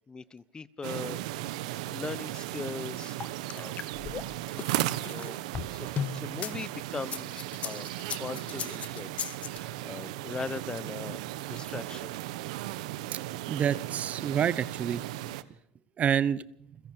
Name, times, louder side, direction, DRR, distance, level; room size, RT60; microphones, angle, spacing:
voice 1, 0.1-1.2 1.9-3.2 3.5-3.8 5.0-5.4 5.7-7.9 8.2-12.1, left 4 dB, 20° left, 19 dB, 1.1 m, -40 dB
sound 1, 0.8-15.4, right 16 dB, 80° right, 1.2 m, -36 dB
sound 2, 3.2-6.5 7.0-9.6, left 8 dB, 40° left, 1.4 m, -36 dB
voice 2, 13.5-15.0 16.0-16.4, right 8 dB, 40° right, 19 dB, 1.0 m, -28 dB
29.0 x 16.0 x 6.7 m, 0.78 s
supercardioid pair, 95°, 4 cm